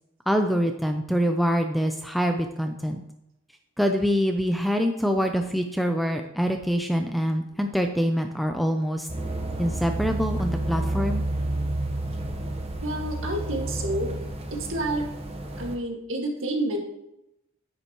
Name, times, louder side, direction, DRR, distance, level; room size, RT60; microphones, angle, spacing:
voice 1, 0.3-3.0 3.8-9.1 9.6-11.2, equal, ahead, 5 dB, 0.5 m, -25 dB
sound 1, 9.1-15.8, right 1 dB, 30° right, 1.0 m, -30 dB
voice 2, 12.8-14.2 14.5-15.0 15.6-16.8, right 1 dB, 60° right, 2 dB, 1.9 m, -29 dB
10.0 x 9.6 x 3.0 m, 0.86 s
head